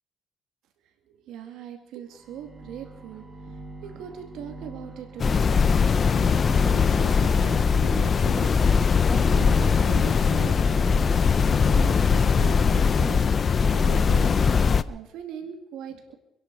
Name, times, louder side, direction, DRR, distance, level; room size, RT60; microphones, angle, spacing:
voice 1, 1.1-5.5 5.8-13.4 13.7-14.4 14.9-16.1, right 8 dB, 90° right, 5 dB, 2.1 m, -40 dB
sound 1, 2.1-11.8, right 2 dB, 30° right, 3.9 m, -43 dB
sound 2, 5.2-14.8, left 5 dB, 45° left, 0.6 m, -21 dB
25.5 x 11.0 x 4.7 m, 0.81 s
cardioid pair, 90°, 0 cm